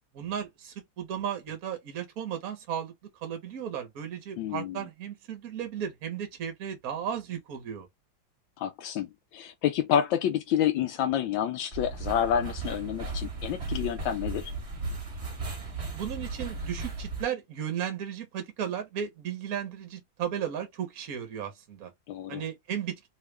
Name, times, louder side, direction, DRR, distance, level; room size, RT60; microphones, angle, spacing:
voice 1, 0.1-2.9 3.2-7.9 16.0-21.9 22.3-23.1, right 9 dB, 55° right, 1.3 m, -35 dB
voice 2, 4.4-4.9 8.6-14.5 22.1-22.4, left 9 dB, 85° left, 1.3 m, -29 dB
sound 1, 11.7-17.2, right 3 dB, 40° right, 1.5 m, -36 dB
3.6 x 2.4 x 3.2 m
omnidirectional pair, 2.1 m